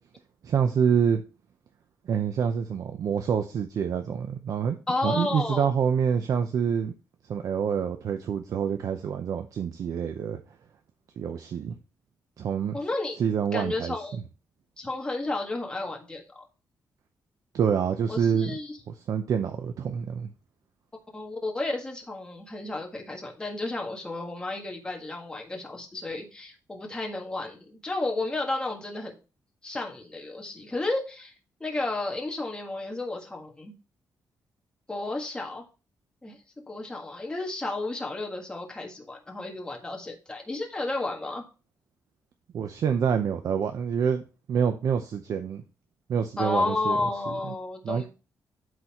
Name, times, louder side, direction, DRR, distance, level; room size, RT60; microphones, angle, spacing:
voice 1, 0.4-1.2 2.1-4.8 5.0-6.9 7.3-10.4 11.2-11.7 12.4-12.8 13.2-14.2 17.5-18.6 19.1-20.3 42.5-44.2 44.5-45.6 46.1-47.1 47.5-47.6 47.8-48.0, right 7 dB, 60° right, 0.7 m, -26 dB
voice 2, 4.9-5.7 12.7-13.2 13.5-14.2 14.8-16.2 18.1-18.8 21.1-29.2 29.6-31.3 31.6-33.7 34.9-35.6 36.2-36.4 36.7-41.4 46.4-48.1, left 2 dB, 15° left, 1.6 m, -32 dB
12.0 x 4.1 x 3.0 m
cardioid pair, 145°, 7 cm